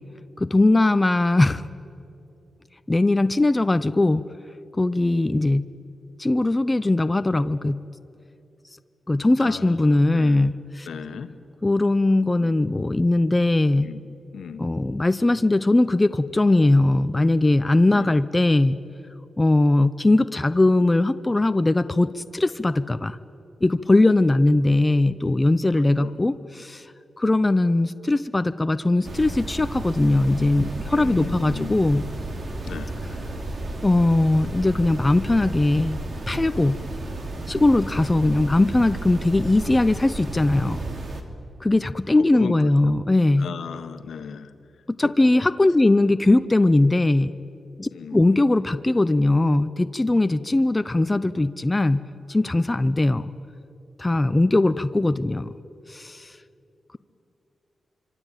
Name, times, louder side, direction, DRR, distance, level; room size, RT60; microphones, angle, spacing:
voice 1, 0.4-1.6 2.9-4.2 4.8-5.7 6.2-7.8 9.1-10.9 11.6-13.9 14.6-18.8 19.4-23.2 23.6-26.9 27.2-32.1 33.8-36.8 37.5-40.8 41.6-43.5 44.9-47.3 47.8-53.3 54.0-55.5 55.9-56.3, left 2 dB, 15° left, 11 dB, 0.6 m, -20 dB
voice 2, 9.4-10.4 10.8-11.3 12.4-12.5 13.8-14.0 14.3-14.6 17.9-18.2 25.8-26.1 30.9-31.7 32.6-33.0 42.2-42.9 43.4-44.5 45.0-45.4 47.9-48.2, left 7 dB, 85° left, 9 dB, 1.4 m, -36 dB
sound 1, 29.0-41.2, right 2 dB, 45° right, 2.6 m, -33 dB
25.5 x 25.0 x 9.1 m, 2.7 s
wide cardioid pair, 135°, 0 cm